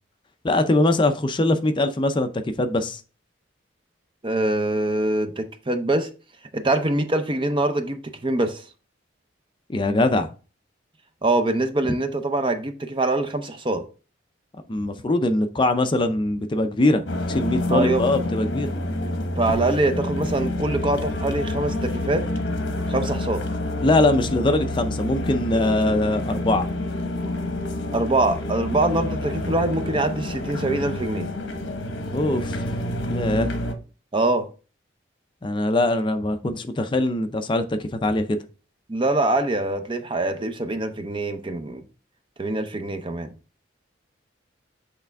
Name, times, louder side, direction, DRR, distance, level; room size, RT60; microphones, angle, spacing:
voice 1, 0.4-2.3 2.6-3.0 9.7-10.3 14.7-18.7 23.8-26.7 32.1-32.6 33.1-33.5 35.4-38.4, left 2 dB, 25° left, 0.4 m, -22 dB
voice 2, 4.2-6.1 6.5-8.6 11.2-13.9 17.7-18.0 19.4-22.3 22.9-23.4 27.9-31.3 34.1-34.5 38.9-41.8 42.4-43.3, right 2 dB, 25° right, 0.6 m, -24 dB
sound 1, 17.1-33.7, left 1 dB, 65° left, 1.0 m, -28 dB
8.2 x 3.3 x 3.4 m
head